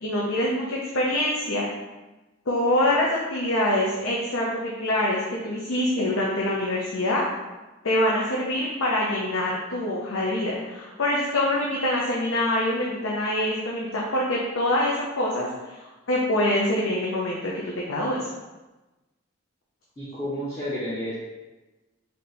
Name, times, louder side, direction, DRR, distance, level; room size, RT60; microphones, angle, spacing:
voice 1, 0.0-1.7 2.5-7.2 7.8-15.8 16.1-18.3, left 1 dB, 90° left, -4 dB, 0.6 m, -25 dB
voice 2, 20.0-21.1, equal, 15° left, -9 dB, 0.7 m, -31 dB
3.5 x 2.8 x 4.1 m, 1.1 s
head